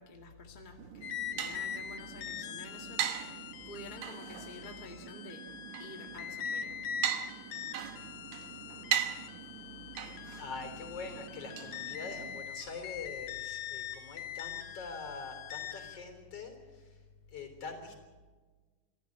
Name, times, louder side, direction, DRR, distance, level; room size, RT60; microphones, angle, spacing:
voice 1, 0.0-5.4 5.8-6.8, left 2 dB, 20° left, 3 dB, 1.5 m, -50 dB
sound 1, 0.8-12.4, right 10 dB, 75° right, 2.5 m, -40 dB
sound 2, 1.0-16.0, left 8 dB, 75° left, 2.4 m, -43 dB
voice 2, 10.4-17.0 17.3-18.1, left 4 dB, 50° left, 6 dB, 4.6 m, -44 dB
26.5 x 14.5 x 8.7 m, 1.4 s
omnidirectional pair, 3.5 m